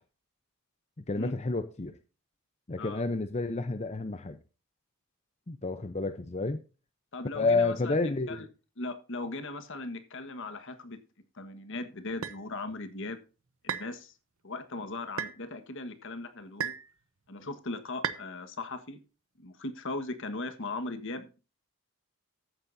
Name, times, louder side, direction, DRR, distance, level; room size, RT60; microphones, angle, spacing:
voice 1, 1.1-2.0 2.7-4.4 5.5-6.6 7.4-8.5, left 3 dB, 30° left, 0.7 m, -30 dB
voice 2, 7.1-8.5 8.8-11.0 11.3-13.2 13.6-14.1 14.4-16.7 17.3-19.0 19.4-21.4, left 2 dB, 60° left, 1.5 m, -38 dB
sound 1, 12.2-12.4 13.7-13.9 15.2-15.4 16.6-16.9 18.0-18.3, right 7 dB, 65° right, 0.8 m, -33 dB
14.5 x 8.4 x 2.7 m
head